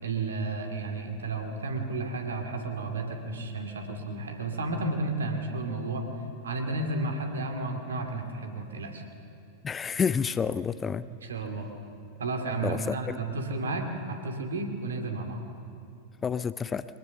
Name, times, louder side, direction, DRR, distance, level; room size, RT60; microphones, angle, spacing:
voice 1, 0.0-6.1 6.4-9.0 11.2-11.7 12.2-15.4, right 2 dB, 70° right, 4 dB, 2.4 m, -32 dB
voice 2, 9.6-11.0 12.6-13.2 16.2-16.9, left 6 dB, 20° left, 16 dB, 0.5 m, -29 dB
23.0 x 20.0 x 7.0 m, 2.6 s
figure-of-eight pair, 90°, 0 cm